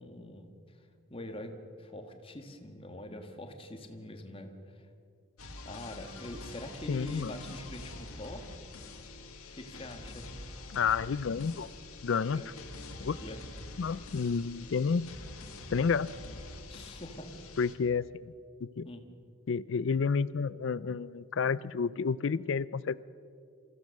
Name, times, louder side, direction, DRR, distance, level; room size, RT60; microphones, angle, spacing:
voice 1, 0.0-4.9 5.6-8.5 9.5-10.3 12.3-12.6 13.2-13.4 16.7-17.3 18.8-19.1, left 1 dB, 25° left, 5 dB, 1.7 m, -44 dB
sound 1, 5.4-17.7, left 2 dB, 90° left, 2.3 m, -46 dB
voice 2, 6.9-7.3 10.7-11.7 12.0-12.4 13.0-13.2 13.8-15.1 15.7-16.1 17.6-18.3 18.6-18.9 19.5-23.0, left 5 dB, 60° left, 18 dB, 0.4 m, -30 dB
26.5 x 15.5 x 6.5 m, 2.3 s
head